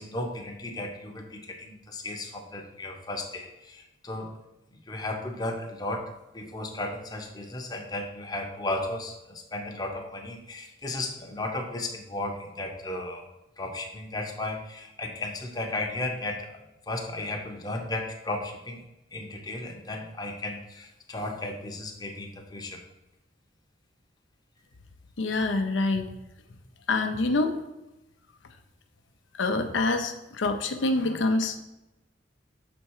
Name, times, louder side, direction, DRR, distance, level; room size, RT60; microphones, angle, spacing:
voice 1, 0.0-4.3 4.9-6.1 6.3-13.2 13.6-16.6 16.9-18.8 19.1-22.8, left 2 dB, 20° left, 2 dB, 0.7 m, -35 dB
voice 2, 25.2-26.1 26.9-27.6 29.4-31.6, left 2 dB, 85° left, 7 dB, 0.6 m, -26 dB
6.5 x 4.3 x 4.7 m, 0.94 s
head